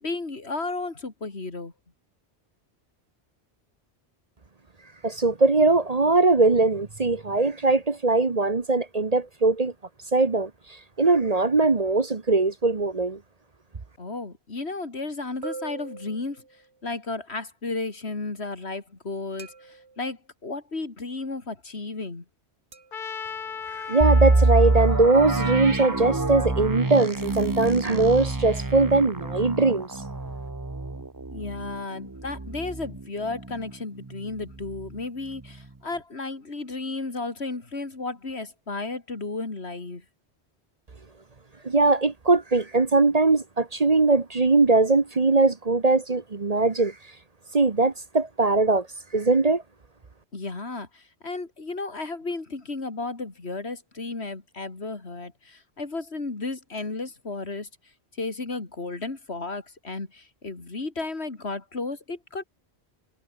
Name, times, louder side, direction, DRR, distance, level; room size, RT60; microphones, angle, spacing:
voice 1, 0.0-1.7 14.0-16.4 16.8-22.2 31.3-40.0 50.3-57.7 58.2-62.4, left 3 dB, 75° left, 3.2 m, -33 dB
voice 2, 5.0-9.7 10.1-10.5 11.0-13.2 23.8-29.9 41.6-46.9 47.5-48.9 49.1-49.6, right 3 dB, 35° right, 1.2 m, -21 dB
sound 1, 11.0-12.1 15.4-16.8 19.4-20.1 22.7-23.0, right 4 dB, 80° right, 2.4 m, -42 dB
Trumpet, 22.9-27.0, left 6 dB, 50° left, 1.1 m, -39 dB
sound 2, 24.0-33.7 34.1-34.2 34.7-34.9, right 2 dB, 20° right, 1.1 m, -26 dB
omnidirectional pair, 1.1 m